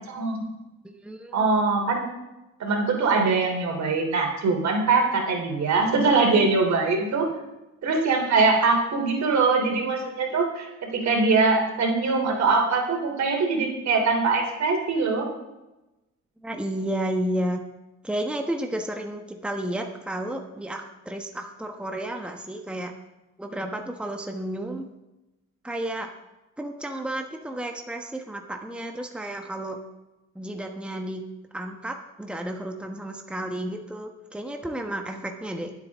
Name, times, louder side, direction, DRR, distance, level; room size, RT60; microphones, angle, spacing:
voice 1, 0.1-0.5 1.3-2.0 2.6-7.3 7.8-15.3, right 4 dB, 65° right, 2 dB, 3.2 m, -22 dB
voice 2, 0.8-1.4 16.4-17.6 18.0-22.9 23.4-24.9 25.6-26.1 26.6-29.8 30.3-31.2 31.5-35.7, right 1 dB, 5° right, 3 dB, 1.2 m, -32 dB
24.0 x 8.3 x 3.6 m, 1.0 s
cardioid pair, 90°, 30 cm